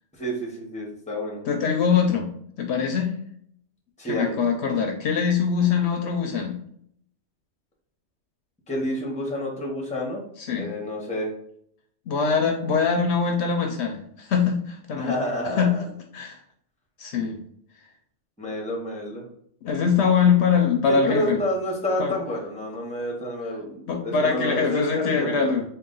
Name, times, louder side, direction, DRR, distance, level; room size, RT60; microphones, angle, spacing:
voice 1, 0.2-1.4 4.0-4.4 8.7-10.2 10.6-11.3 15.0-15.8 18.4-19.3 20.9-25.5, equal, 5° left, -1 dB, 0.8 m, -29 dB
voice 2, 1.5-2.3 2.6-3.1 4.1-6.6 10.5-10.7 12.1-15.1 15.4-15.8 16.1-16.4 17.0-17.4 19.6-21.4 22.0-22.1 23.9-25.6, left 6 dB, 70° left, 3 dB, 0.8 m, -23 dB
3.8 x 2.5 x 3.7 m, 0.67 s
omnidirectional pair, 1.3 m